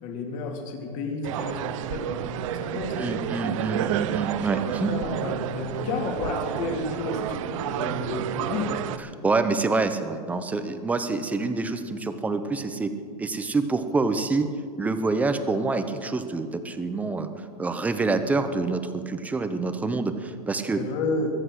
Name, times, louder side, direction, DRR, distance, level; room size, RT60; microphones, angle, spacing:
voice 1, 0.0-3.2 4.4-8.8 20.8-21.3, left 3 dB, 35° left, 2 dB, 2.6 m, -31 dB
sound 1, 1.2-9.0, right 11 dB, 55° right, 0.7 m, -30 dB
voice 2, 3.0-4.9 9.0-12.9 13.2-14.5 14.8-17.3 17.6-20.8, right 3 dB, 5° right, 9 dB, 0.7 m, -26 dB
22.0 x 8.0 x 6.3 m, 2.1 s
supercardioid pair, 150°, 20 cm